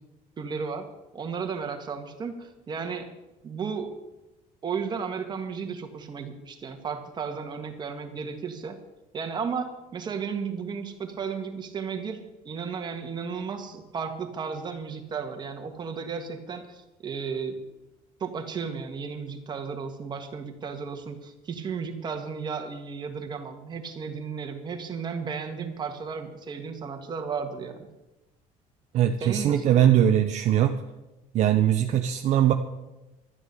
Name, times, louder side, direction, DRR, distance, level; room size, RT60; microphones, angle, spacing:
voice 1, 0.4-0.9 1.1-3.1 3.4-3.9 4.6-8.8 9.1-17.6 18.2-27.9 29.2-29.8, right 6 dB, 30° right, 5 dB, 1.8 m, -34 dB
voice 2, 28.9-30.7 31.3-32.5, right 10 dB, 50° right, 5 dB, 0.9 m, -21 dB
12.5 x 9.7 x 8.4 m, 1.0 s
cardioid pair, 145°, 15 cm